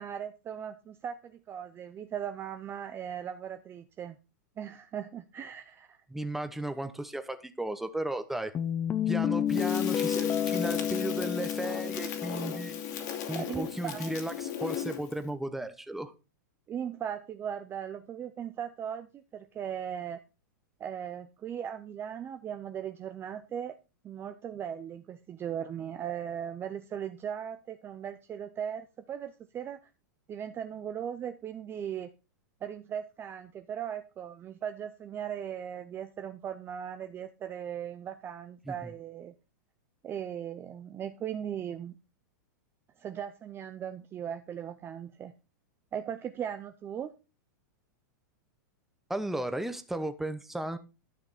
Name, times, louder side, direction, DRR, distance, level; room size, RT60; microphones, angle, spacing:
voice 1, 0.0-4.2 4.6-6.0 13.3-14.1 14.7-14.9 16.7-20.2 20.8-23.8 24.0-29.9 30.3-32.1 32.6-39.3 40.0-42.0 43.0-45.3 45.9-47.1, right 9 dB, 20° right, 9 dB, 0.6 m, -38 dB
voice 2, 6.1-8.5 9.1-12.7 13.3-16.1 38.7-38.8 49.1-50.8, right 1 dB, 5° right, 9 dB, 1.0 m, -35 dB
sound 1, 8.5-14.2, left 9 dB, 20° left, 0.7 m, -31 dB
Crackle, 9.5-15.2, left 9 dB, 60° left, 2.8 m, -38 dB
12.0 x 5.8 x 4.2 m, 0.29 s
hypercardioid pair, 130°, 10 cm